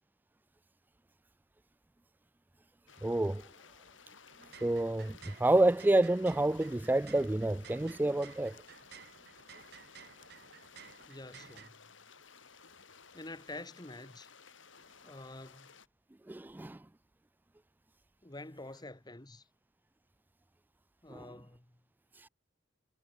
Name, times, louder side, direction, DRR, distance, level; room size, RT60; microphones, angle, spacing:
sound 1, 2.9-15.9, left 5 dB, 90° left, 5.6 m, -57 dB
voice 1, 3.0-3.4 4.6-8.5 16.3-16.8 21.1-21.3 22.2-22.3, right 1 dB, 10° right, 0.3 m, -28 dB
sound 2, 4.3-11.7, right 8 dB, 60° right, 1.2 m, -55 dB
voice 2, 11.1-11.7 13.1-14.3 15.0-15.7 18.2-19.4 21.0-21.7, left 2 dB, 20° left, 1.5 m, -47 dB
head